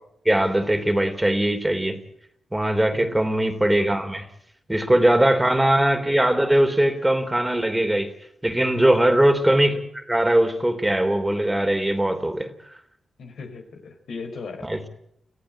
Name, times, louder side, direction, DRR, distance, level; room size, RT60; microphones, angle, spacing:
voice 1, 0.2-2.0 2.5-4.3 4.7-8.1 8.4-12.5 14.6-14.9, right 1 dB, 15° right, 8 dB, 3.1 m, -20 dB
voice 2, 2.9-3.3 8.7-9.2 13.2-14.7, left 4 dB, 70° left, 4 dB, 4.1 m, -38 dB
24.5 x 14.5 x 8.8 m, 0.74 s
supercardioid pair, 45°, 0 cm